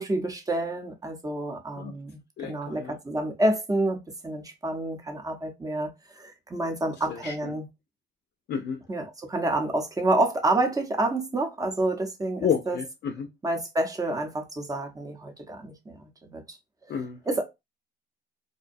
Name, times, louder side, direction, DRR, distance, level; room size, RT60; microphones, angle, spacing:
voice 1, 0.0-5.9 6.2-7.7 8.9-12.8 13.4-16.6 17.3-17.4, right 2 dB, 15° right, 0.7 m, -28 dB
voice 2, 2.4-3.0 7.1-7.5 8.5-8.8 12.4-13.3 16.9-17.2, left 7 dB, 55° left, 0.5 m, -30 dB
2.6 x 2.1 x 2.5 m
cardioid pair, 90°, 20 cm